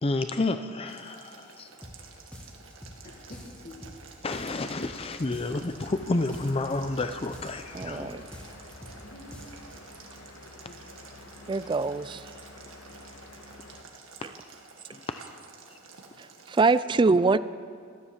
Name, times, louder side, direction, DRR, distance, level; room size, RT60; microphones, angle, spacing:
voice 1, 0.0-1.7 4.2-8.3 14.9-15.2, left 2 dB, 30° left, 9 dB, 0.5 m, -30 dB
Boiling, 0.8-16.8, right 4 dB, 80° right, 1.9 m, -51 dB
sound 1, 1.8-2.0 2.3-3.0 3.3-4.0 4.3-5.0 5.3-6.0 6.3-7.0 7.3-8.0 8.3-9.0 9.3-9.8, equal, 5° left, 1.5 m, -46 dB
voice 2, 3.0-3.9 8.7-9.5 10.2-10.8 11.1-11.2, left 1 dB, 45° left, -4 dB, 2.0 m, -50 dB
sound 2, 5.8-13.8, left 2 dB, 85° left, 1.5 m, -49 dB
voice 3, 7.7-8.2 11.5-12.2 16.5-17.4, right 3 dB, 25° right, 16 dB, 0.3 m, -23 dB
14.5 x 12.5 x 7.2 m, 2.4 s
head